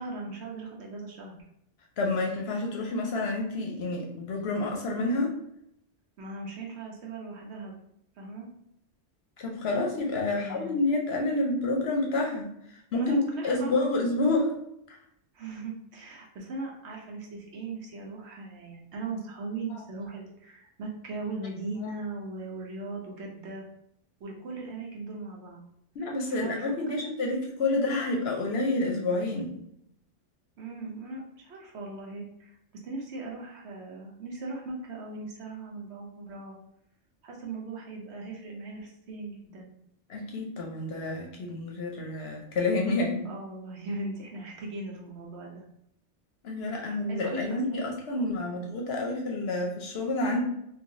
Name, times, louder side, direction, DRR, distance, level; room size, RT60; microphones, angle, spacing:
voice 1, 0.0-1.4 6.2-7.8 8.2-8.5 10.3-10.8 12.9-13.7 15.3-23.7 24.2-25.6 26.0-27.0 30.6-32.6 32.8-36.6 37.2-39.7 43.2-45.6 46.7-47.8 48.2-48.4, right 3 dB, 65° right, -1 dB, 0.9 m, -39 dB
voice 2, 2.0-5.4 9.4-13.2 13.4-14.6 19.7-19.8 26.0-29.5 40.1-43.3 46.4-50.4, left 2 dB, 65° left, 0 dB, 0.8 m, -29 dB
3.1 x 2.3 x 2.6 m, 0.75 s
omnidirectional pair, 1.3 m